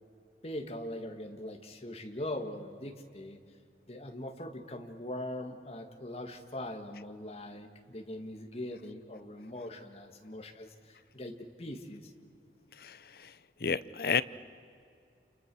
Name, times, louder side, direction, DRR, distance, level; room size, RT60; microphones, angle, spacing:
voice 1, 0.4-3.4 3.9-12.1, left 1 dB, 35° left, 4 dB, 2.0 m, -41 dB
voice 2, 12.8-13.3 13.6-14.2, left 6 dB, 55° left, 16 dB, 0.7 m, -31 dB
29.5 x 29.0 x 6.3 m, 2.4 s
head